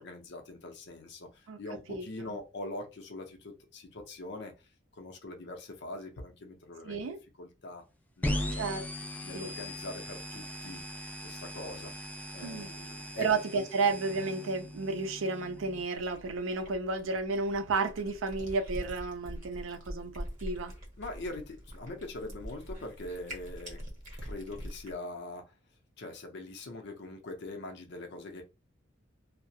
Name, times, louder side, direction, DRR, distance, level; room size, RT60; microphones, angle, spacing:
voice 1, 0.0-4.5 5.0-7.0 7.4-7.8 8.2-8.9 9.2-10.8 11.2-11.9 12.3-13.6 21.0-23.8 24.2-25.5 26.0-28.4, left 2 dB, 60° left, 0.6 m, -43 dB
voice 2, 6.8-7.2 8.6-8.8 9.3-9.5 12.4-12.7 13.2-20.7, right 4 dB, 80° right, 0.4 m, -32 dB
sound 1, 8.2-15.8, left 1 dB, 10° left, 0.3 m, -39 dB
Cat, 15.9-24.9, equal, 40° right, 0.8 m, -44 dB
2.3 x 2.0 x 2.7 m
head